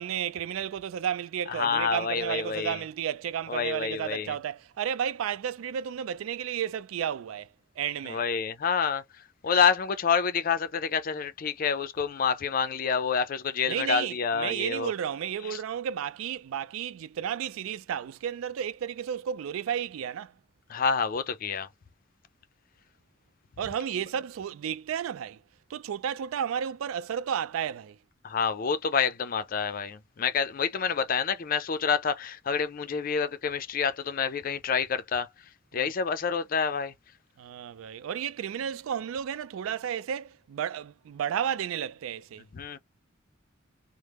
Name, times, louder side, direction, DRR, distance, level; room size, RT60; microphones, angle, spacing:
voice 1, 0.0-7.5 7.8-8.2 13.7-20.3 23.6-25.4 25.7-28.0 35.7-35.9 37.4-42.4, right 9 dB, 85° right, 0.3 m, -32 dB
voice 2, 1.5-2.8 3.5-4.3 8.0-9.0 9.4-14.9 15.4-15.6 20.7-21.7 28.2-35.3 35.7-36.9 42.5-42.8, left 6 dB, 45° left, 0.4 m, -28 dB
3.4 x 2.0 x 3.0 m
head